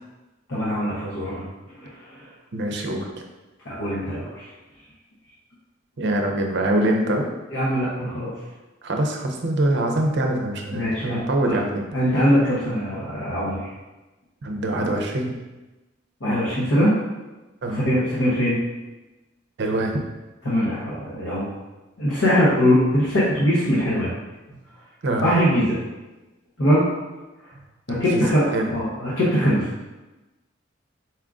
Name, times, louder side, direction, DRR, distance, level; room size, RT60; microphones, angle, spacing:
voice 1, 0.5-1.4 2.1-2.2 3.7-4.5 7.5-8.3 10.7-11.2 11.5-11.6 11.9-13.6 16.2-16.9 17.7-18.6 20.4-21.4 22.0-24.1 25.2-25.8 26.6-26.9 28.0-29.7, equal, 70° left, -8 dB, 0.9 m, -21 dB
voice 2, 2.5-3.2 6.0-7.3 8.8-11.8 14.4-15.3 17.6-18.0 19.6-20.0 25.0-25.3 28.0-28.7, right 1 dB, 60° right, 2 dB, 0.6 m, -24 dB
4.4 x 2.4 x 3.6 m, 1.1 s
head